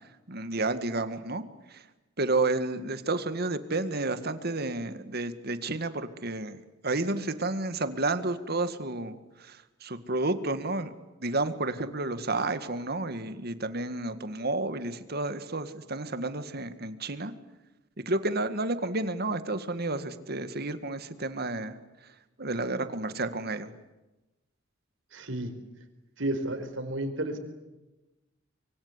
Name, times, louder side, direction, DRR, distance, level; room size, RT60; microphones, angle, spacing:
voice 1, 0.3-1.8 2.2-10.9 11.2-17.3 18.1-21.8 22.4-23.7, right 2 dB, 55° right, 11 dB, 2.0 m, -31 dB
voice 2, 25.1-25.5 26.2-27.4, right 1 dB, 80° right, 7 dB, 4.7 m, -32 dB
25.5 x 24.0 x 9.8 m, 1.1 s
head